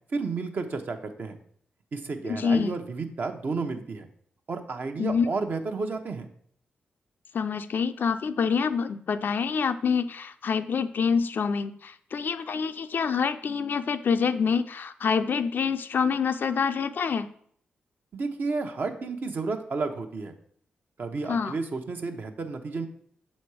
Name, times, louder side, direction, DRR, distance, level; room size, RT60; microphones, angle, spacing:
voice 1, 0.1-1.4 1.9-4.1 4.5-6.3 18.1-20.3 21.0-22.9, right 4 dB, 55° right, 5 dB, 0.8 m, -31 dB
voice 2, 2.2-2.8 5.0-5.3 7.3-17.3 21.3-21.5, left 6 dB, 65° left, 10 dB, 0.4 m, -26 dB
6.7 x 4.2 x 4.7 m, 0.63 s
cardioid pair, 60°, 4 cm